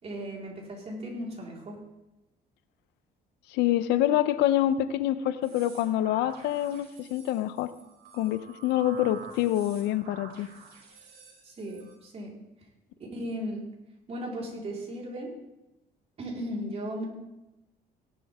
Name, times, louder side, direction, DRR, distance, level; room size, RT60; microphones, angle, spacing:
voice 1, 0.0-1.8 11.4-12.3 13.1-13.6 14.1-15.3 16.2-17.1, equal, 40° right, -3 dB, 4.4 m, -36 dB
voice 2, 3.5-7.7 8.1-10.5, left 12 dB, 90° left, 13 dB, 0.7 m, -26 dB
sound 1, 5.4-11.9, right 5 dB, 70° right, 5.0 m, -49 dB
17.0 x 11.5 x 3.6 m, 0.94 s
cardioid pair, 110°, 17 cm